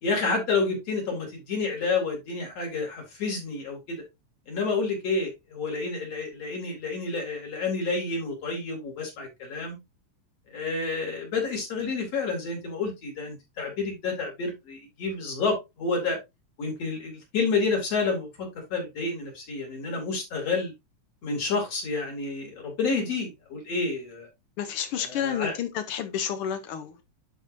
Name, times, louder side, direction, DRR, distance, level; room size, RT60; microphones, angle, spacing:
voice 1, 0.0-4.0 4.5-9.8 10.5-16.2 16.6-20.7 21.2-24.3 25.0-25.5, left 4 dB, 60° left, 3.6 m, -29 dB
voice 2, 24.6-27.1, left 9 dB, 75° left, 1.2 m, -30 dB
11.5 x 4.7 x 2.6 m
omnidirectional pair, 3.4 m